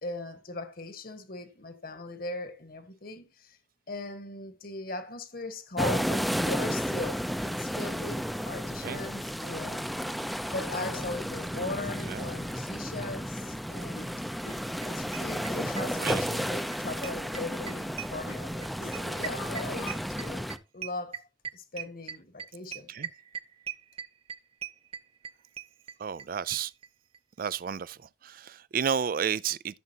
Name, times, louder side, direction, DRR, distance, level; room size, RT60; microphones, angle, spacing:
voice 1, 0.0-3.6 3.9-8.2 8.5-10.1 10.5-14.2 14.9-20.5 20.7-21.2 21.5-23.1, left 2 dB, 50° left, 1.6 m, -39 dB
sound 1, 5.8-20.6, equal, ahead, 0.6 m, -33 dB
sound 2, 9.5-9.7 10.5-11.3 12.2-12.6 12.9-13.0 13.4-13.6 13.9-14.1 14.4-14.6 14.8-15.0 15.7-15.9 16.4-16.6 17.5-17.6 18.3-18.4 18.8-20.0, left 2 dB, 90° left, 1.8 m, -45 dB
sound 3, 14.5-14.6 14.8-14.9 15.1-16.8 17.0-26.3 26.5-26.6 26.8-26.9 27.1-27.2, right 8 dB, 30° right, 0.7 m, -39 dB
voice 2, 15.8-16.2 22.9-23.1 26.0-26.7 27.4-29.8, right 7 dB, 50° right, 0.4 m, -32 dB
14.5 x 7.2 x 2.9 m
head